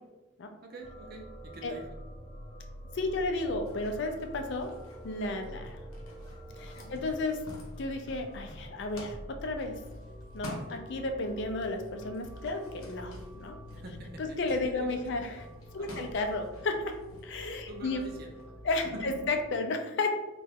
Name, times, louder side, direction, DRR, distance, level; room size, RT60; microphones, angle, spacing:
voice 1, 0.6-2.0 5.5-5.7 6.7-7.0 13.7-15.3 15.7-16.1 17.7-18.4 18.9-19.3, right 1 dB, 45° right, 2 dB, 0.5 m, -46 dB
sound 1, 0.8-19.6, equal, 10° left, 0.6 m, -47 dB
voice 2, 2.9-4.7 5.0-5.8 6.6-7.4 7.8-9.8 10.3-13.6 14.2-15.5 15.7-16.9 17.2-18.0 18.6-20.1, left 2 dB, 55° left, 5 dB, 0.4 m, -33 dB
sound 2, 3.6-11.4 11.6-18.4, left 1 dB, 90° left, 0.8 m, -50 dB
2.9 x 2.2 x 3.5 m, 1.1 s
head